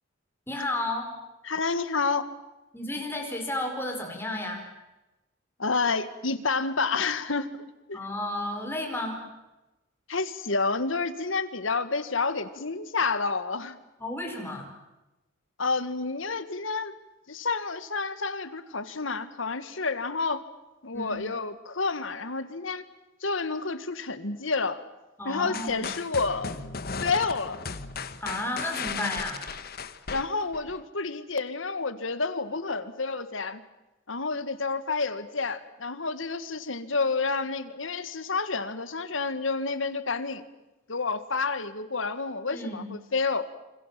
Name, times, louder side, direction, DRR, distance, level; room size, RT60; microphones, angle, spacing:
voice 1, 0.5-1.1 2.7-4.7 7.9-9.2 14.0-14.7 20.9-21.2 25.2-25.9 28.2-29.4 42.5-42.9, left 1 dB, 10° left, 2 dB, 4.9 m, -32 dB
voice 2, 1.4-2.3 5.6-8.0 10.1-13.8 15.6-16.9 17.3-20.4 20.8-22.8 23.2-24.8 25.2-26.5 27.0-27.6 30.1-33.6 34.1-40.4 40.9-43.5, left 4 dB, 75° left, 12 dB, 1.7 m, -29 dB
sound 1, 25.5-30.8, left 5 dB, 50° left, 1.3 m, -36 dB
27.5 x 26.0 x 7.5 m, 1.0 s
head